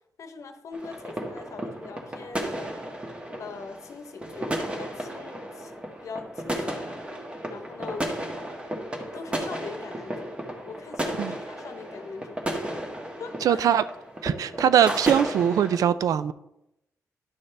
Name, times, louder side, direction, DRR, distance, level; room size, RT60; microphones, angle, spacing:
voice 1, 0.2-2.6 3.4-6.9 7.5-8.2 9.1-10.4 10.7-12.4 13.2-13.6, left 5 dB, 60° left, 8 dB, 0.9 m, -41 dB
sound 1, 0.7-15.8, right 1 dB, 20° right, 1.3 m, -34 dB
voice 2, 13.4-13.8 14.2-16.3, right 9 dB, 85° right, 14 dB, 0.4 m, -21 dB
10.5 x 6.4 x 3.3 m, 0.85 s
wide cardioid pair, 130°, 6 cm